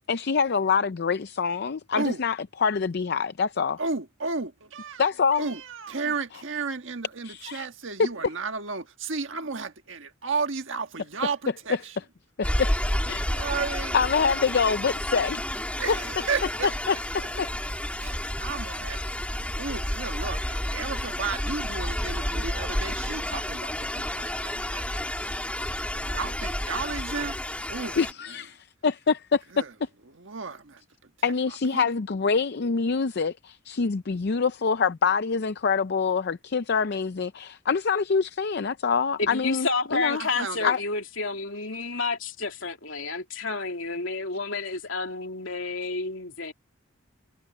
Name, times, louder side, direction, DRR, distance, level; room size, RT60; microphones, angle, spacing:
voice 1, 0.1-3.8 5.0-5.5 7.2-7.7 8.0-8.1 11.7-11.8 12.4-12.7 13.1-13.2 13.9-15.4 15.9-16.0 16.9-17.5 28.0-29.4 31.2-40.2 40.6-40.8, left 5 dB, 55° left, 0.5 m, -25 dB
voice 2, 3.8-11.9 13.3-14.0 15.8-16.7 18.0-25.0 25.9-27.4 27.7-28.0 29.5-29.7 30.1-31.1 31.7-31.9 40.1-40.7, right 4 dB, 65° right, 1.5 m, -33 dB
sound 1, 12.4-28.1, left 1 dB, 5° left, 2.7 m, -30 dB
voice 3, 39.2-46.5, left 3 dB, 70° left, 3.1 m, -30 dB
head